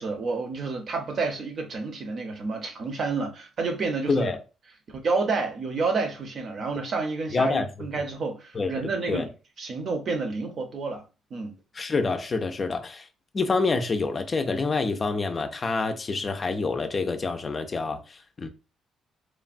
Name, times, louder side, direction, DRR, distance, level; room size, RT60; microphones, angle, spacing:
voice 1, 0.0-4.3 5.0-9.3 9.6-11.0 11.3-11.5, right 4 dB, 55° right, 0.7 m, -29 dB
voice 2, 4.1-4.4 7.3-7.7 8.5-8.7 9.1-9.3 11.7-13.1 13.3-18.5, left 3 dB, 35° left, 0.4 m, -27 dB
3.2 x 2.2 x 2.5 m
cardioid pair, 90°, 0 cm